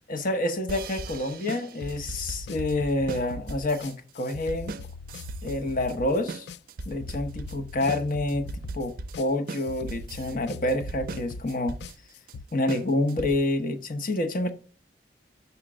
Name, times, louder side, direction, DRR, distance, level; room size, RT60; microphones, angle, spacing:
voice 1, 0.1-4.8 5.4-6.5 6.9-8.5 8.7-11.8 12.5-14.5, left 1 dB, 50° left, 0.9 m, -28 dB
sound 1, 0.7-13.6, right 3 dB, 55° right, 0.5 m, -39 dB
sound 2, 1.8-12.5, left 4 dB, 70° left, 0.3 m, -41 dB
5.8 x 4.3 x 4.9 m
head